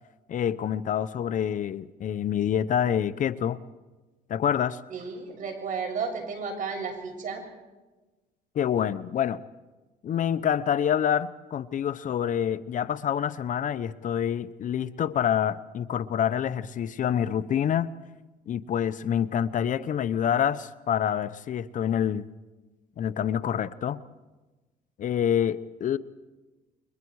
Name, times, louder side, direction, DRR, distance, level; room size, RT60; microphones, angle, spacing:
voice 1, 0.3-3.6 4.3-4.8 8.5-9.4 10.0-17.9 18.5-22.3 23.0-24.0 25.0-26.0, left 9 dB, 50° left, 14 dB, 0.8 m, -27 dB
voice 2, 4.9-7.4, right 5 dB, 50° right, 3 dB, 7.3 m, -33 dB
29.5 x 23.5 x 4.8 m, 1.2 s
cardioid pair, 110°, 17 cm